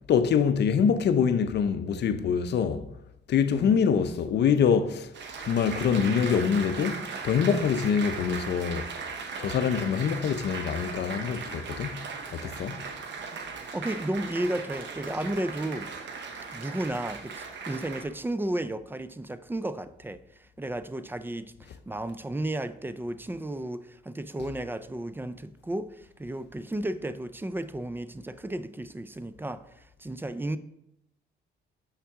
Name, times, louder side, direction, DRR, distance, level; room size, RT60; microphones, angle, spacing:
voice 1, 0.1-2.8 3.3-5.1 5.4-8.9 9.4-12.0 12.3-12.8, left 7 dB, 60° left, 0.6 m, -25 dB
voice 2, 3.5-3.8 13.6-15.9 16.5-20.2 20.6-30.6, right 1 dB, 10° right, 0.4 m, -33 dB
Applause, 5.1-18.0, right 5 dB, 65° right, 1.0 m, -38 dB
7.4 x 5.7 x 3.6 m
cardioid pair, 90°, 20 cm